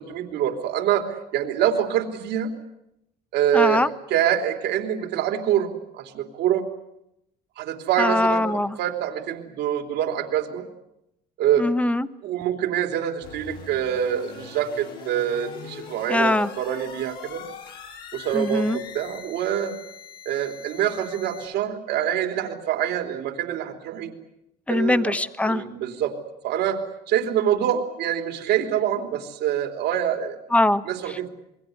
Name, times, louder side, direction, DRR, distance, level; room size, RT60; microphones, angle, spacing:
voice 1, 0.0-2.5 3.3-3.8 4.1-6.7 7.6-8.5 8.8-10.6 11.4-11.7 12.2-17.4 18.1-19.8 20.2-24.1 24.7-25.2 25.5-26.2 26.4-30.4 30.8-31.3, right 10 dB, 80° right, 5 dB, 3.4 m, -25 dB
voice 2, 3.5-3.9 8.0-8.7 11.6-12.1 16.1-16.5 18.3-18.8 24.7-25.6 30.5-30.8, left 2 dB, 10° left, 12 dB, 1.1 m, -21 dB
sound 1, 13.2-21.5, left 7 dB, 70° left, 5.4 m, -42 dB
28.0 x 22.0 x 8.0 m, 0.82 s
cardioid pair, 110°, 17 cm